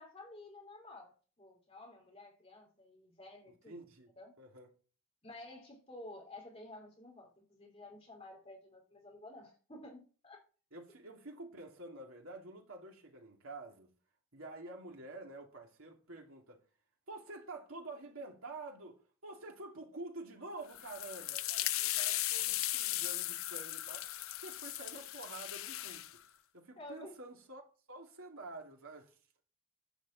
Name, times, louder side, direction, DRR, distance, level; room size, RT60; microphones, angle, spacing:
voice 1, 0.0-3.8 4.2-4.3 5.2-10.4 26.8-27.1, left 2 dB, 25° left, 3.0 m, -52 dB
voice 2, 3.7-4.1 4.4-4.7 10.7-13.9 14.3-16.6 17.1-24.1 24.4-26.0 26.5-27.6 27.9-29.2, right 2 dB, 80° right, 2.9 m, -48 dB
sound 1, 20.7-26.1, left 15 dB, 80° left, 0.6 m, -37 dB
11.5 x 5.0 x 7.6 m
head